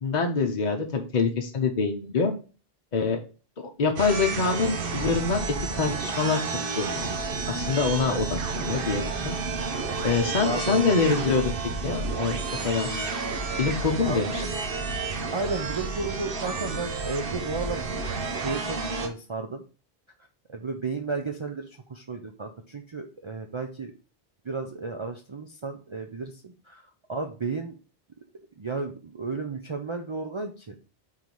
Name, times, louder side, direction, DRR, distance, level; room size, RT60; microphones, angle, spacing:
voice 1, 0.0-2.3 2.9-3.2 3.8-6.4 6.8-7.1 7.5-9.4 10.0-11.5 11.8-13.0 13.6-14.4, left 4 dB, 45° left, 2 dB, 0.9 m, -25 dB
sound 1, 4.0-19.1, right 4 dB, 60° right, 1.0 m, -31 dB
voice 2, 9.7-11.0 14.0-14.5 15.3-19.6 20.5-23.9 24.4-26.8 27.1-27.8 28.6-30.7, right 3 dB, 35° right, 4 dB, 0.5 m, -33 dB
4.7 x 3.8 x 5.3 m, 0.35 s
omnidirectional pair, 1.1 m